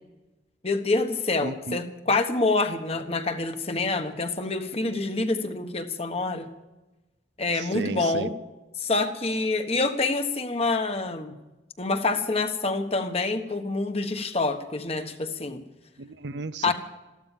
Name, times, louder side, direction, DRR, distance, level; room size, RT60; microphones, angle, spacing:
voice 1, 0.6-6.5 7.4-8.3 8.8-11.3 11.8-15.6 16.6-16.7, left 3 dB, 30° left, 7 dB, 1.3 m, -26 dB
voice 2, 1.4-1.8 7.5-8.3 16.0-16.7, right 3 dB, 70° right, 14 dB, 0.6 m, -34 dB
14.0 x 13.0 x 7.4 m, 1.1 s
head